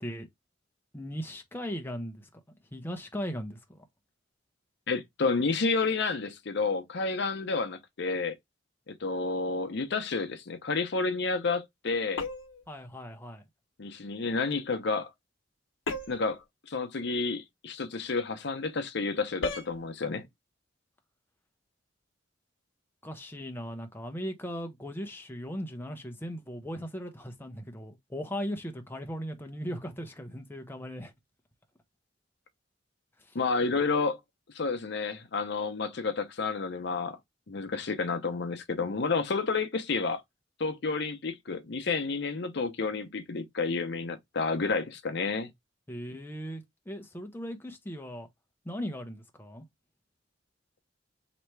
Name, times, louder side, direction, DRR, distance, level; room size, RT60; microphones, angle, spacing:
voice 1, 0.9-2.3 2.7-3.8 12.7-13.4 23.0-31.1 33.2-33.4 45.9-48.3 48.6-49.7, equal, 10° left, 0.7 m, -38 dB
voice 2, 4.9-8.3 8.9-12.2 13.8-15.1 16.1-20.2 33.3-34.2 34.5-37.2 37.5-40.2 40.6-45.5, left 4 dB, 60° left, 0.7 m, -30 dB
sound 1, 12.2-12.7 15.9-16.3 19.4-19.8, left 3 dB, 90° left, 0.9 m, -35 dB
3.2 x 2.9 x 4.4 m
head